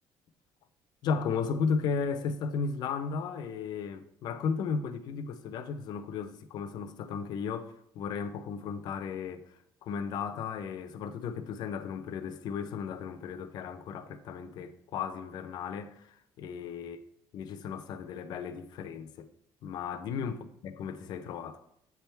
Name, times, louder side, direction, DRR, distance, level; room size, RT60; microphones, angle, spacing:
voice 1, 1.0-9.5 9.8-16.0 16.4-17.0 17.3-19.3 19.6-21.6, left 6 dB, 60° left, 0.6 m, -35 dB
7.9 x 3.5 x 4.4 m
cardioid pair, 175°, 8 cm